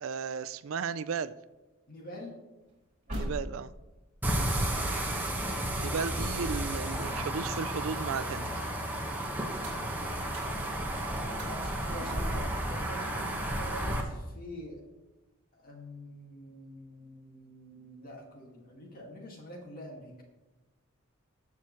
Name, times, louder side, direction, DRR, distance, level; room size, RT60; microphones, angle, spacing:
voice 1, 0.0-1.3 3.1-3.7 5.8-8.5, right 6 dB, 70° right, 0.4 m, -35 dB
voice 2, 1.9-2.3 11.0-14.8 15.5-20.1, left 1 dB, 45° left, 2.1 m, -46 dB
sound 1, 2.6-7.7 8.1-13.5, equal, 35° right, 3.8 m, -45 dB
sound 2, 4.2-14.0, right 1 dB, 10° right, 1.4 m, -32 dB
20.5 x 6.9 x 3.2 m
head